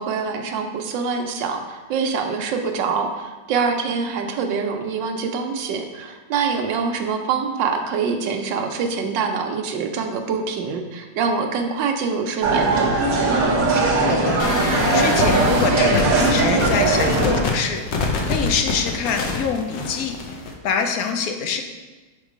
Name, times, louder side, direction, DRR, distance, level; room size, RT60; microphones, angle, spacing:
voice 1, 0.0-12.9, right 5 dB, 80° right, 4 dB, 1.3 m, -25 dB
sound 1, 12.4-17.4, right 3 dB, 55° right, 1.2 m, -19 dB
voice 2, 14.1-14.4 14.9-20.2 20.6-21.6, left 6 dB, 70° left, 5 dB, 0.9 m, -25 dB
sound 2, 14.4-20.5, left 3 dB, 85° left, 1.6 m, -25 dB
6.3 x 3.7 x 5.0 m, 1.2 s
omnidirectional pair, 2.0 m